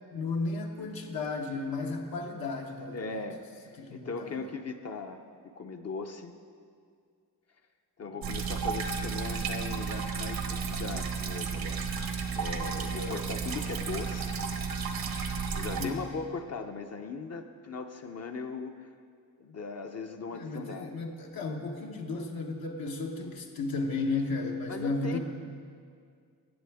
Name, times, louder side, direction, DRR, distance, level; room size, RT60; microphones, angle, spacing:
voice 1, 0.1-3.2 3.8-4.4 12.9-13.2 15.8-16.1 20.3-25.2, left 3 dB, 80° left, 1 dB, 1.0 m, -34 dB
voice 2, 2.9-5.2 5.6-6.3 8.0-12.0 12.3-14.4 15.5-18.9 19.4-20.9 24.7-25.2, left 4 dB, 45° left, 5 dB, 0.5 m, -39 dB
sound 1, 8.2-15.9, right 5 dB, 80° right, 0.9 m, -33 dB
15.5 x 7.6 x 3.4 m, 2.2 s
wide cardioid pair, 110°, 36 cm